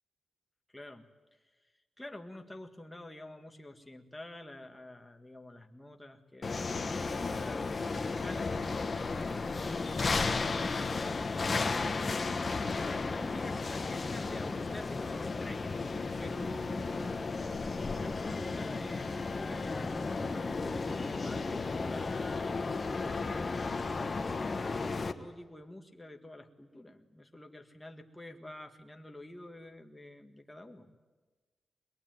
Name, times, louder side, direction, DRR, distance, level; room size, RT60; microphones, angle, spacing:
voice 1, 0.7-1.1 2.0-11.0 11.3-15.8 16.2-17.7 18.0-31.0, left 1 dB, 10° left, 4 dB, 1.9 m, -49 dB
sound 1, 6.4-25.1, left 4 dB, 35° left, 1.4 m, -34 dB
23.0 x 21.5 x 9.3 m, 1.3 s
wide cardioid pair, 125°, 0 cm